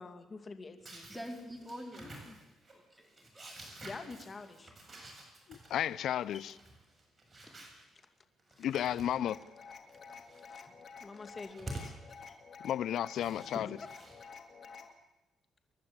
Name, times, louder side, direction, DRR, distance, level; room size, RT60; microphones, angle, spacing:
voice 1, 0.0-1.1 2.0-2.4 3.8-4.7 6.3-6.5 7.4-7.5 8.6-8.7 9.9-10.0 10.5-10.7 11.0-11.9 12.3-12.4 13.5-14.1, left 3 dB, 35° left, 2.5 m, -47 dB
sound 1, 0.8-7.8 8.4-9.4 9.8-10.5 11.3-11.9 12.9-14.1, right 1 dB, 25° right, 7.4 m, -50 dB
voice 2, 1.1-2.2 2.7-3.8 7.5-7.6, equal, 5° right, 4.4 m, -47 dB
voice 3, 5.5-6.5 8.6-9.4 12.6-13.7, left 11 dB, 75° left, 0.6 m, -33 dB
sound 2, 9.2-14.9, left 5 dB, 50° left, 2.7 m, -51 dB
28.0 x 11.5 x 8.9 m
cardioid pair, 90°, 0 cm